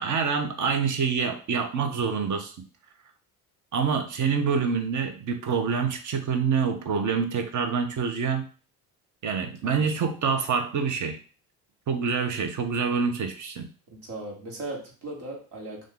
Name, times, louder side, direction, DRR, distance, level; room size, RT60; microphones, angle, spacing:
voice 1, 0.0-2.5 3.7-8.5 9.2-11.2 11.9-13.7, right 6 dB, 40° right, 7 dB, 0.7 m, -26 dB
voice 2, 13.9-15.9, right 2 dB, 60° right, -1 dB, 1.4 m, -38 dB
2.5 x 2.4 x 3.8 m, 0.38 s
hypercardioid pair, 60°, 47 cm